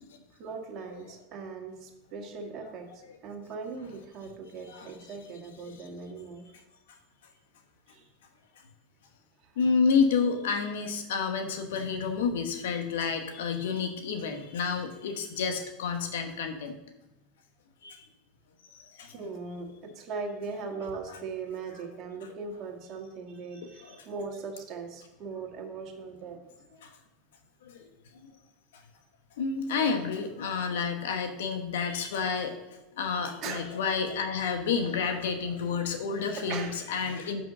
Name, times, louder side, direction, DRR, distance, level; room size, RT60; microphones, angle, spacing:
voice 1, 0.4-6.5 7.9-8.1 9.4-9.5 19.1-26.5 33.4-33.7 36.4-36.8, right 4 dB, 45° right, 1 dB, 1.8 m, -39 dB
voice 2, 9.6-16.8 17.8-18.0 18.8-19.1 21.1-21.2 23.8-24.0 26.8-26.9 27.6-27.9 29.4-32.6 33.0-37.4, left 5 dB, 85° left, 6 dB, 1.2 m, -29 dB
6.0 x 5.3 x 6.1 m, 0.98 s
supercardioid pair, 115°, 0 cm